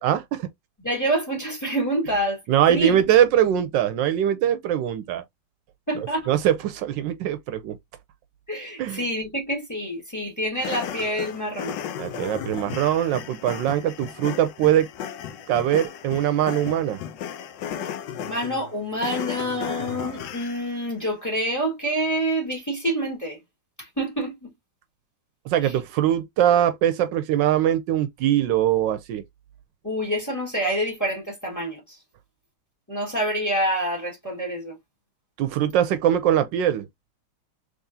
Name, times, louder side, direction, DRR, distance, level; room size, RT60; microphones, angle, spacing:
voice 1, 0.0-0.5 2.5-5.2 5.9-7.8 8.8-9.0 12.0-14.9 15.5-17.0 25.5-29.2 35.4-36.9, right 10 dB, 80° right, 1.2 m, -22 dB
voice 2, 0.8-2.4 2.7-3.0 5.9-6.2 8.5-11.7 18.2-23.4 23.8-24.5 25.6-25.7 29.8-32.0 32.9-34.8, right 1 dB, 10° left, 1.7 m, -27 dB
sound 1, 10.6-20.8, left 9 dB, 75° left, 1.2 m, -35 dB
3.6 x 3.4 x 2.6 m
omnidirectional pair, 2.0 m